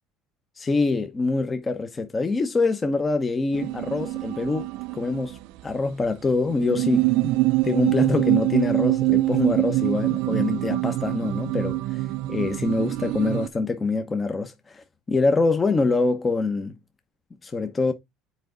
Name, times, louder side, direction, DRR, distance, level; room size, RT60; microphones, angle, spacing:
voice 1, 0.6-4.7 4.9-5.4 5.6-7.3 7.6-12.0 12.3-16.8 17.4-17.9, left 3 dB, 25° left, 1.0 m, -25 dB
sound 1, 3.5-5.4 5.7-5.8 6.5-13.5, right 19 dB, 75° right, 0.5 m, -24 dB
7.6 x 4.8 x 3.9 m
supercardioid pair, 95°, 0 cm